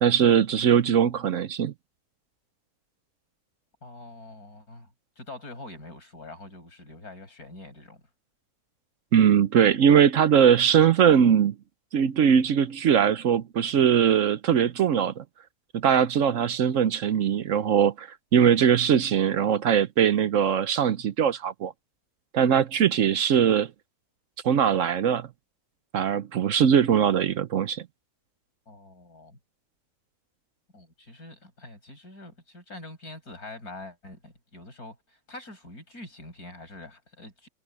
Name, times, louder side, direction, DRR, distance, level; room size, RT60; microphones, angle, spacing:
voice 1, 0.0-1.7 9.1-11.5 11.9-15.2 15.7-21.7 22.3-23.7 24.4-25.3 25.9-27.8, right 8 dB, 60° right, 1.0 m, -21 dB
voice 2, 3.8-4.9 5.2-8.0 28.7-29.4 30.7-37.5, left 2 dB, 80° left, 7.6 m, -44 dB
omnidirectional pair, 1.6 m